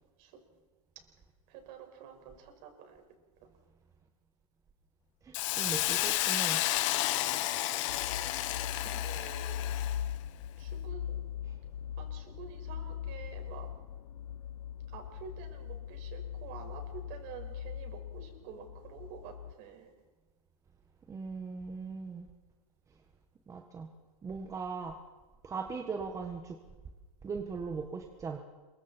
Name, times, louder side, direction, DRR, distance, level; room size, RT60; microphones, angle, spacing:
voice 1, 1.5-3.0 7.5-9.7 10.6-11.2 12.0-13.7 14.9-19.9, right 7 dB, 45° right, 4 dB, 5.5 m, -49 dB
voice 2, 5.2-6.6 8.8-8.9 11.5-11.6 21.1-22.3 23.5-23.9 24.2-24.9 25.4-26.6 27.2-28.4, right 5 dB, 15° right, 4 dB, 1.5 m, -39 dB
Hiss, 5.3-10.1, left 16 dB, 55° left, 1.3 m, -31 dB
sound 1, 7.9-19.5, left 9 dB, 80° left, 0.8 m, -40 dB
27.0 x 24.0 x 4.5 m, 1.2 s
hypercardioid pair, 135°, 19 cm